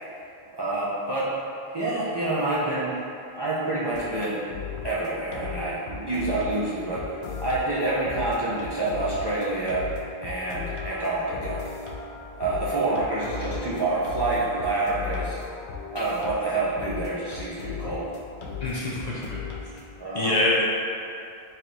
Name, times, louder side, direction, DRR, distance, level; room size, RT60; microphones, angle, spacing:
voice 1, 0.5-1.3 1.7-2.9 3.3-4.4 4.8-7.0 7.4-9.8 10.2-11.6 12.4-15.4 15.9-18.1 20.0-20.4, right 2 dB, 35° right, -9 dB, 0.4 m, -27 dB
sound 1, 3.9-20.0, left 6 dB, 90° left, 0.9 m, -37 dB
voice 2, 18.6-19.4 20.1-20.6, left 2 dB, 50° left, -7 dB, 0.6 m, -25 dB
3.3 x 2.6 x 4.5 m, 2.5 s
omnidirectional pair, 1.1 m